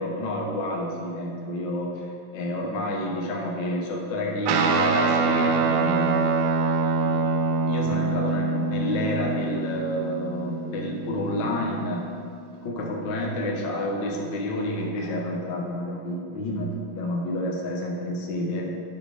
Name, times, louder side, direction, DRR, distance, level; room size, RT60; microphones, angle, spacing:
voice 1, 0.0-6.3 7.0-7.4 7.7-12.1 12.6-18.7, left 1 dB, 80° left, -1 dB, 1.0 m, -29 dB
Guitar, 4.5-12.1, right 4 dB, 80° right, 2.5 m, -25 dB
11.5 x 6.0 x 5.2 m, 2.3 s
omnidirectional pair, 4.2 m